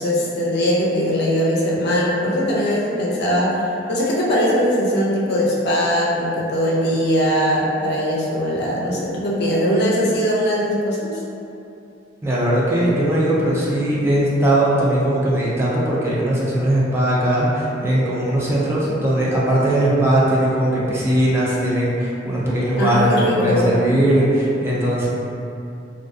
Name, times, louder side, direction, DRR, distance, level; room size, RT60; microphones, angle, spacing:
voice 1, 0.0-3.6 3.9-11.2 22.7-23.8, equal, 60° left, -5 dB, 0.5 m, -20 dB
voice 2, 12.2-25.1, right 1 dB, 15° right, -7 dB, 0.3 m, -19 dB
2.6 x 2.3 x 2.3 m, 2.7 s
head